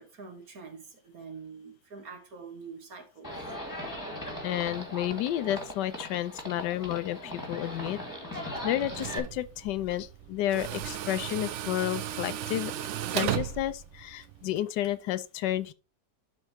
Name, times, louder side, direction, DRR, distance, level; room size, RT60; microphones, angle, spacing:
voice 1, 0.0-3.3 6.4-6.5 6.8-7.0, right 5 dB, 55° right, 2.2 m, -45 dB
Livestock farm animals working animals, 3.2-9.2, left 1 dB, 10° left, 2.4 m, -39 dB
voice 2, 4.4-8.0 8.6-12.7 13.1-15.7, left 12 dB, 80° left, 1.2 m, -31 dB
Tools, 8.3-14.6, right 11 dB, 80° right, 0.6 m, -36 dB
12.0 x 4.6 x 3.1 m
omnidirectional pair, 1.9 m